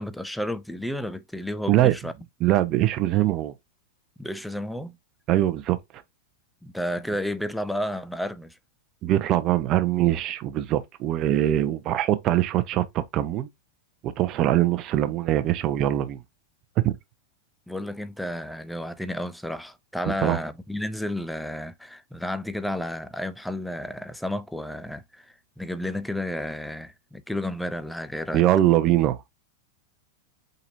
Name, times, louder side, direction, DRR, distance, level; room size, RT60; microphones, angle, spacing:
voice 1, 0.0-2.1 4.2-5.0 6.6-8.6 17.7-28.4, left 1 dB, ahead, 0.5 m, -32 dB
voice 2, 2.4-3.5 5.3-5.8 9.0-13.5 14.0-16.2 16.8-16.9 20.1-20.4 28.3-29.2, right 13 dB, 40° right, 0.7 m, -22 dB
4.4 x 3.9 x 2.6 m
hypercardioid pair, 110°, 0 cm